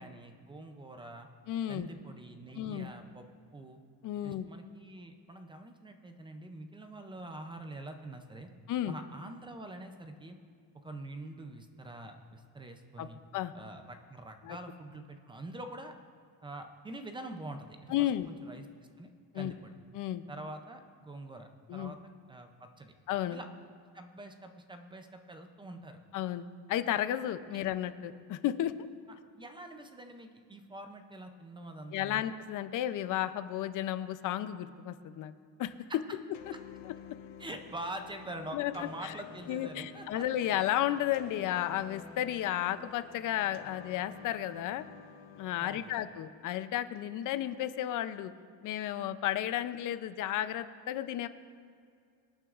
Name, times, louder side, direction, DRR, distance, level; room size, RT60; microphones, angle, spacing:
voice 1, 0.0-1.3 1.7-3.3 3.5-3.8 4.2-8.5 8.9-10.4 10.7-13.2 13.5-15.9 16.4-18.7 19.0-19.7 20.3-22.0 22.3-22.9 23.3-23.5 23.9-26.0 29.4-32.2 37.4-40.2 45.6-45.9, right 1 dB, 10° right, 5 dB, 0.4 m, -45 dB
voice 2, 1.5-1.9 2.5-2.9 4.0-4.5 8.7-8.9 13.0-13.5 14.4-14.6 17.9-18.3 19.3-19.5 19.9-20.2 21.7-21.9 23.1-23.4 26.1-28.7 31.9-35.3 35.6-35.7 36.8-36.9 38.5-38.7 39.0-39.1 39.5-44.8 45.4-48.3 48.6-51.3, left 12 dB, 45° left, 12 dB, 0.5 m, -33 dB
sound 1, 36.3-45.9, left 8 dB, 80° left, 1.0 m, -51 dB
25.0 x 9.1 x 2.4 m, 2.3 s
cardioid pair, 175°, 44 cm